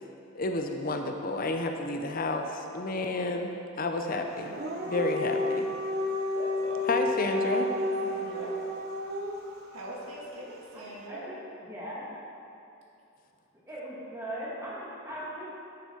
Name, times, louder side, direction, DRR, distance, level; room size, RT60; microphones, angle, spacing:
voice 1, 0.3-3.5 3.8-4.5 4.9-5.7 6.9-7.7, left 2 dB, 40° left, 4 dB, 0.5 m, -30 dB
Dog, 4.4-9.5, left 2 dB, 50° right, 0.8 m, -31 dB
voice 2, 6.3-7.1 7.8-8.5 9.7-11.3, right 1 dB, 85° right, -3 dB, 1.8 m, -42 dB
voice 3, 10.7-11.4 11.6-12.1 13.7-15.5, equal, 15° right, -7 dB, 1.9 m, -39 dB
10.5 x 6.9 x 4.5 m, 2.7 s
head